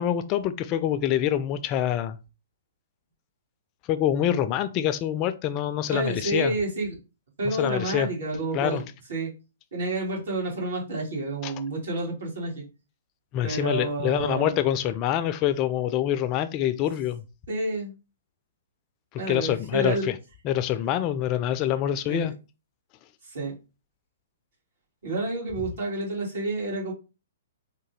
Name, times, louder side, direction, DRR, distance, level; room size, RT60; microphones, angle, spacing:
voice 1, 0.0-2.2 3.9-6.5 7.4-8.1 8.5-8.8 11.4-11.5 13.3-17.2 19.1-20.1 20.4-22.3, left 11 dB, 35° left, 0.3 m, -26 dB
voice 2, 5.9-7.0 7.4-8.8 9.1-9.3 9.7-12.6 13.4-14.5 17.5-17.9 19.2-20.1 22.0-22.3 23.2-23.5 25.0-26.9, right 2 dB, 70° right, 1.8 m, -29 dB
3.6 x 2.2 x 3.2 m
hypercardioid pair, 125°, 0 cm